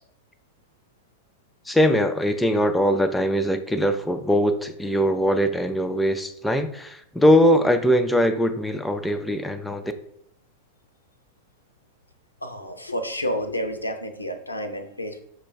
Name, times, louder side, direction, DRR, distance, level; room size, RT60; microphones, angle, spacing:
voice 1, 1.7-9.9, equal, 5° left, 7 dB, 0.3 m, -21 dB
voice 2, 12.4-15.2, equal, 85° left, 7 dB, 0.4 m, -30 dB
6.0 x 2.2 x 3.3 m, 0.73 s
figure-of-eight pair, 90°, 0 cm